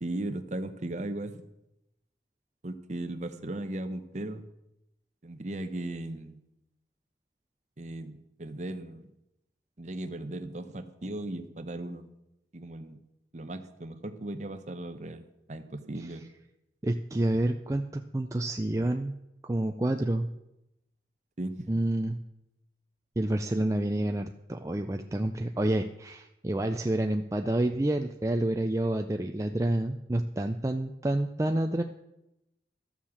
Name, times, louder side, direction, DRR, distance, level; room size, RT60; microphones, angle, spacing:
voice 1, 0.0-1.3 2.6-4.4 5.2-6.4 7.8-9.1 9.8-12.0 12.5-13.0 13.3-15.2 15.5-16.2 21.4-21.7, right 1 dB, 40° right, 9 dB, 0.9 m, -37 dB
voice 2, 16.8-19.1 19.4-20.3 21.7-22.2 23.2-31.8, right 1 dB, 15° right, 5 dB, 0.4 m, -28 dB
13.0 x 7.3 x 7.1 m, 0.89 s
head